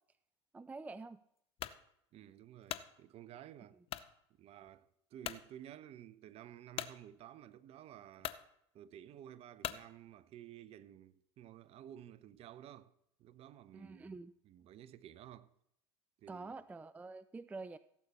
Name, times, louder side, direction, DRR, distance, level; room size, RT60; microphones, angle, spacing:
voice 1, 0.5-1.2 13.7-14.3 16.3-17.8, right 3 dB, 10° right, 0.4 m, -47 dB
sound 1, 1.6-1.8 2.4-2.9 3.9-4.1 4.7-4.8 5.2-5.4 6.8-7.0 7.7-7.8 8.2-8.4 9.6-9.9, left 11 dB, 40° left, 0.7 m, -41 dB
voice 2, 2.1-3.8 4.4-8.3 8.7-12.9 13.2-14.1 14.4-15.5 16.2-16.5, right 11 dB, 40° right, 0.8 m, -53 dB
16.0 x 8.4 x 4.2 m
hypercardioid pair, 90°, 15 cm